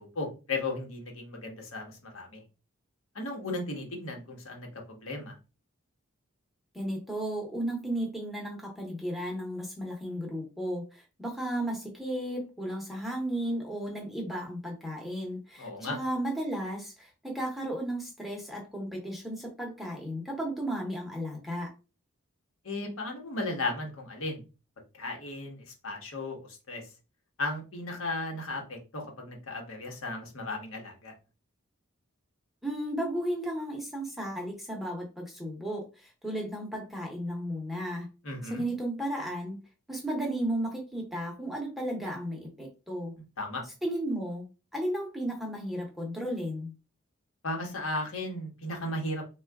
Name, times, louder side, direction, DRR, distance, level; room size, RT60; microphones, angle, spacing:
voice 1, 0.0-2.4 3.1-5.3 15.6-16.0 22.6-24.4 24.9-25.6 25.8-26.4 26.7-26.8 27.4-31.1 38.2-38.6 43.4-43.6 47.4-49.3, left 2 dB, 70° left, 2 dB, 1.0 m, -35 dB
voice 2, 6.7-21.7 32.6-38.1 38.5-39.6 39.9-43.1 43.8-44.4 44.7-46.7, right 1 dB, ahead, 0 dB, 0.8 m, -34 dB
3.7 x 2.3 x 3.4 m, 0.31 s
head